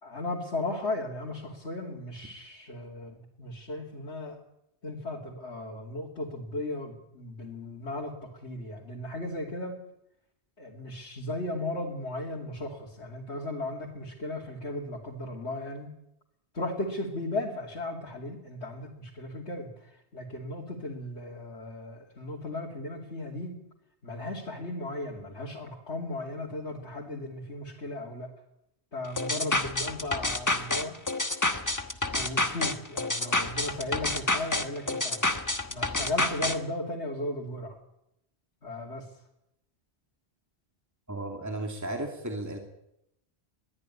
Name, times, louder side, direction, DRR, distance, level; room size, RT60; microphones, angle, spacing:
voice 1, 0.0-4.4 4.8-9.8 10.6-15.9 16.5-23.6 24.0-28.3 28.9-31.0 32.1-35.2 35.7-37.7 38.6-39.1, left 2 dB, 85° left, -4 dB, 3.1 m, -36 dB
sound 1, 29.2-36.6, left 2 dB, 15° left, 1.2 m, -28 dB
voice 2, 41.1-42.6, right 1 dB, 15° right, 3 dB, 2.6 m, -34 dB
21.5 x 14.0 x 9.8 m, 0.82 s
omnidirectional pair, 1.1 m